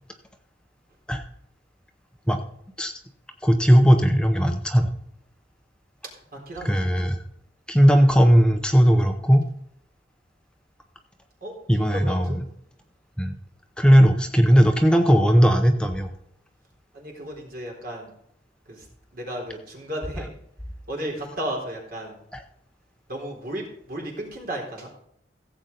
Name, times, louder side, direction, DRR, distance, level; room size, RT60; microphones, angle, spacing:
voice 1, 3.4-4.9 6.6-7.2 7.7-9.4 11.7-12.3 13.2-13.3 13.8-16.1 22.3-22.4, equal, 5° left, 5 dB, 0.7 m, -17 dB
voice 2, 6.3-6.8 11.4-12.4 16.9-18.1 18.7-18.9 19.1-20.3 20.9-22.2 23.1-24.9, right 1 dB, 55° right, 0 dB, 3.8 m, -34 dB
15.5 x 7.8 x 3.9 m, 0.73 s
head